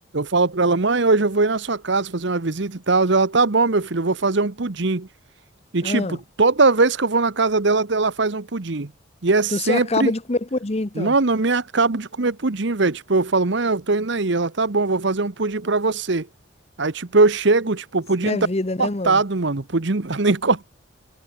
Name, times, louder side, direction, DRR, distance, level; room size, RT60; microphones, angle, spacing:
voice 1, 0.1-5.1 5.7-8.9 9.2-10.1 11.0-16.3 16.8-18.5 18.8-20.7, right 3 dB, 55° right, 1.0 m, -21 dB
voice 2, 5.8-6.2 9.5-11.1 18.2-19.2, left 2 dB, 30° left, 0.9 m, -25 dB
head